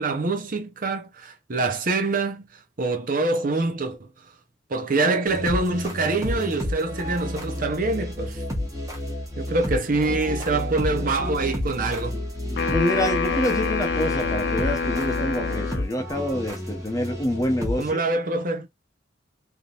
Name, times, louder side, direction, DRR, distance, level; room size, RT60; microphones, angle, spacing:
voice 1, 0.0-2.5 2.8-4.1 4.7-8.4 9.4-12.2 17.8-18.7, right 3 dB, 50° right, 0.7 m, -25 dB
sound 1, 5.3-17.9, left 1 dB, 15° right, 1.2 m, -31 dB
voice 2, 12.5-17.9, left 1 dB, 20° left, 0.7 m, -26 dB
sound 2, 12.6-15.9, left 4 dB, 65° left, 0.8 m, -27 dB
3.5 x 2.8 x 2.4 m
head